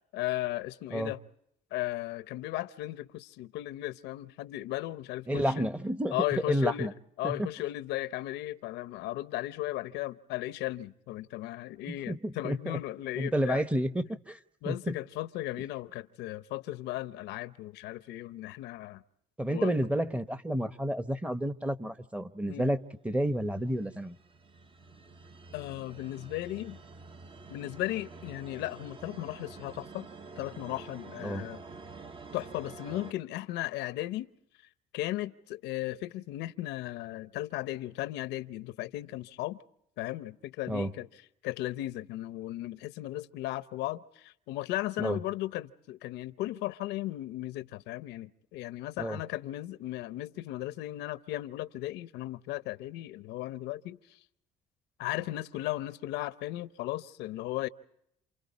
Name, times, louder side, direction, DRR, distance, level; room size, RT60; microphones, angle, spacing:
voice 1, 0.1-1.2 1.7-5.7 6.1-13.6 14.6-19.0 19.5-19.7 22.5-22.7 25.5-26.8 27.5-30.1 30.4-31.6 32.3-34.3 34.9-39.6 40.0-41.1 41.4-54.2 55.0-57.7, left 16 dB, 90° left, 0.8 m, -36 dB
voice 2, 5.3-6.1 6.5-6.9 7.2-7.5 11.9-12.8 13.2-14.4 14.6-14.9 19.4-22.8 23.0-24.1 31.2-31.5 40.7-40.9 45.0-45.2 49.0-49.2, equal, 5° right, 1.0 m, -30 dB
sound 1, 23.5-33.1, right 4 dB, 30° right, 0.9 m, -48 dB
29.0 x 27.5 x 4.1 m
cardioid pair, 110°, 17 cm